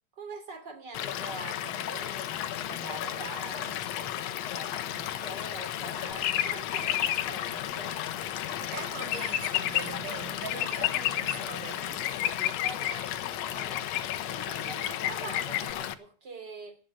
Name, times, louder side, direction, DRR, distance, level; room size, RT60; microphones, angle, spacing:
voice 1, 0.2-8.0 8.7-8.9 10.5-11.3 12.3-13.9 14.3-16.8, right 3 dB, 30° right, 3.7 m, -44 dB
Stream / Liquid, 0.9-15.9, left 11 dB, 70° left, 1.7 m, -35 dB
sound 1, 6.2-7.2 9.0-9.8 10.5-11.3 12.0-12.9 13.6-14.2 14.6-15.1 15.3-15.7, left 13 dB, 90° left, 2.5 m, -29 dB
voice 2, 8.5-12.2, right 8 dB, 75° right, 2.9 m, -42 dB
19.0 x 6.9 x 7.6 m
omnidirectional pair, 3.8 m